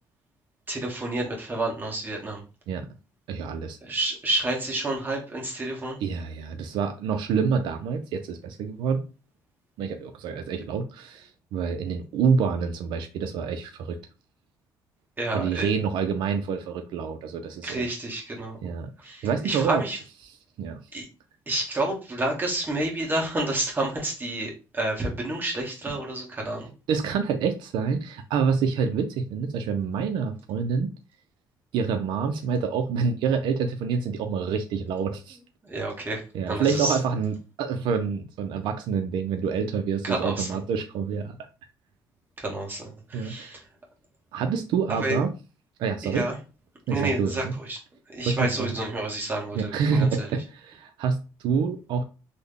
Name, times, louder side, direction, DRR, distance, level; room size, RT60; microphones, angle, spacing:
voice 1, 0.7-2.4 3.8-6.0 15.2-15.7 17.6-18.6 19.0-20.0 20.9-21.0 21.5-26.7 35.6-36.9 40.0-40.6 42.4-43.6 45.0-45.2 46.1-46.3 46.9-47.8 48.1-50.3, right 2 dB, 25° right, 1.3 m, -29 dB
voice 2, 3.3-3.8 6.0-9.0 9.8-14.0 15.3-17.9 18.6-18.9 19.2-19.8 20.2-20.8 26.9-30.9 31.7-35.4 36.3-41.4 43.1-43.5 44.3-45.3 45.8-46.3 46.9-47.5 48.3-48.7 49.5-52.0, right 6 dB, 80° right, 0.4 m, -27 dB
3.3 x 2.1 x 3.6 m
cardioid pair, 95°, 8 cm